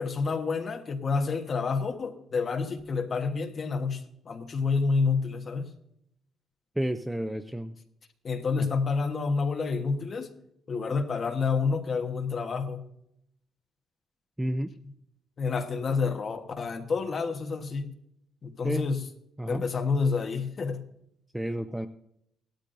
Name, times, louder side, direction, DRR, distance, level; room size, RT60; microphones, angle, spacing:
voice 1, 0.0-5.7 8.2-10.3 10.7-12.8 15.4-17.9 18.4-19.0 19.5-20.8, left 4 dB, 30° left, 1.3 m, -29 dB
voice 2, 6.8-7.7 8.6-8.7 14.4-14.7 18.6-18.9 19.4-19.6 21.3-21.9, right 1 dB, 5° right, 0.4 m, -31 dB
17.5 x 13.0 x 2.6 m
cardioid pair, 175°, 0 cm